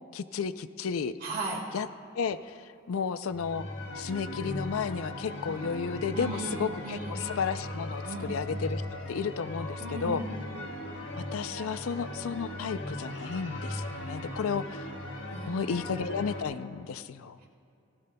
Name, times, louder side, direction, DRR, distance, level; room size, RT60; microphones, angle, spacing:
voice 1, 0.1-1.1 1.7-1.9 2.1-3.7 4.0-8.8 9.1-10.2 11.2-14.9 15.5-17.4, left 6 dB, 85° left, 13 dB, 0.4 m, -33 dB
voice 2, 1.2-1.7 6.1-7.2 8.0-8.2 9.8-10.2 15.3-15.5, right 3 dB, 45° right, -2 dB, 2.5 m, -36 dB
sound 1, 3.3-16.4, left 1 dB, 60° left, 1.5 m, -38 dB
18.0 x 16.0 x 2.2 m, 2.7 s
head